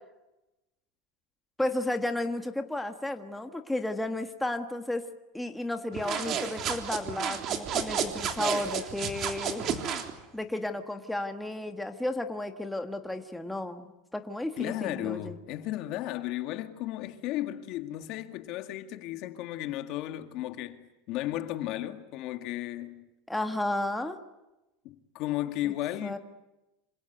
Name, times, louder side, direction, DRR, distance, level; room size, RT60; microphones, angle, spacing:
voice 1, 1.6-5.0 5.3-9.6 10.3-15.4 23.3-24.2 25.6-25.7 26.0-26.2, left 1 dB, 5° left, 1.6 m, -33 dB
sound 1, 5.9-10.1, right 7 dB, 35° right, 3.4 m, -32 dB
voice 2, 14.6-23.1 24.8-26.2, left 14 dB, 45° left, 2.0 m, -34 dB
27.0 x 27.0 x 8.0 m
supercardioid pair, 160°, 0 cm